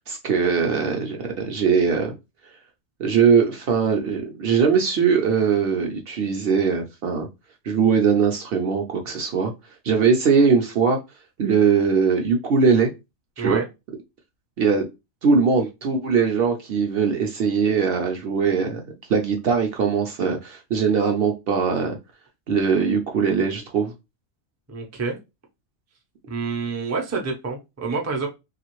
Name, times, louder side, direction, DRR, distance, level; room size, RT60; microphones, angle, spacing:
voice 1, 0.1-2.1 3.0-7.3 7.6-9.5 9.8-11.0 11.4-12.9 13.4-13.6 14.6-14.8 15.2-18.8 19.1-22.0 22.5-23.9, right 5 dB, 60° right, 0.7 m, -21 dB
voice 2, 24.7-25.2 26.3-28.3, right 4 dB, 25° right, 0.3 m, -28 dB
2.8 x 2.4 x 3.0 m
omnidirectional pair, 1.3 m